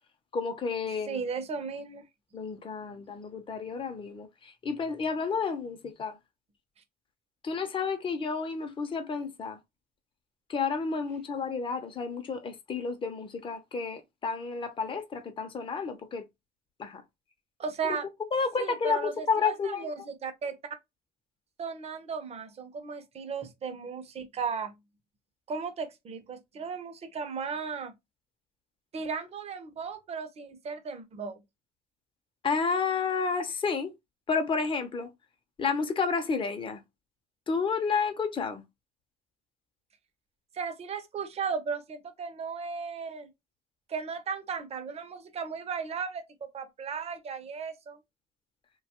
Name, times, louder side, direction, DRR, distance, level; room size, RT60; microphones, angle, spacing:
voice 1, 0.3-1.2 2.3-6.2 7.4-9.6 10.5-16.2 16.8-17.0 17.8-18.0 18.3-19.9 32.4-33.9 34.3-35.1 35.6-36.8 37.5-38.6, left 5 dB, 30° left, 0.6 m, -31 dB
voice 2, 1.1-2.1 17.6-18.1 18.6-20.6 21.6-24.8 25.5-28.0 28.9-31.4 40.5-43.3 43.9-48.0, right 5 dB, 40° right, 0.6 m, -36 dB
2.7 x 2.3 x 2.8 m
cardioid pair, 110°, 17 cm